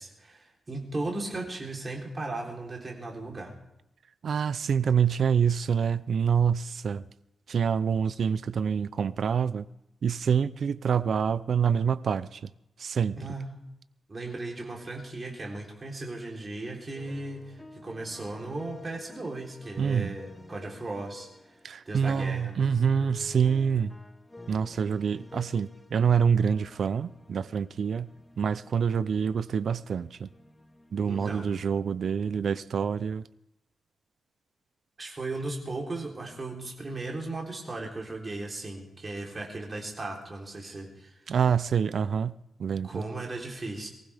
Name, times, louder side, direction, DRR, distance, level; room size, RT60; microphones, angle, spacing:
voice 1, 0.0-3.5 13.2-13.5 14.1-21.6 21.9-22.5 31.0-31.5 35.0-41.2 42.8-43.9, right 2 dB, 25° right, 3.7 m, -36 dB
voice 2, 4.2-7.1 7.5-9.7 10.0-12.5 12.8-13.2 19.8-20.1 21.6-23.9 24.5-28.1 28.4-30.3 30.9-33.3 41.3-42.3 42.6-43.1, right 7 dB, 60° right, 0.6 m, -26 dB
sound 1, 16.9-21.9 22.4-26.1 26.3-31.2, left 2 dB, 15° left, 1.2 m, -49 dB
23.5 x 15.5 x 3.5 m
wide cardioid pair, 140°, 0 cm